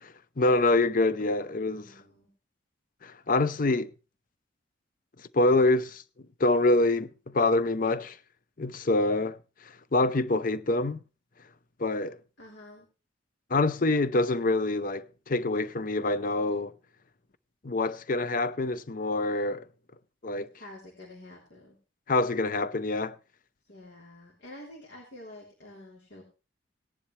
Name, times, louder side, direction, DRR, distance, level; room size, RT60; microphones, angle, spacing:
voice 1, 0.0-1.9 3.0-3.9 5.3-6.0 6.4-8.2 8.6-9.4 9.9-11.0 11.8-12.2 13.5-16.7 17.6-19.6 20.2-20.5 22.1-23.1, left 2 dB, 45° left, 0.6 m, -26 dB
voice 2, 1.4-2.3 12.4-12.9 20.5-21.8 23.7-26.2, left 1 dB, 65° left, 3.3 m, -48 dB
18.0 x 10.5 x 3.2 m
head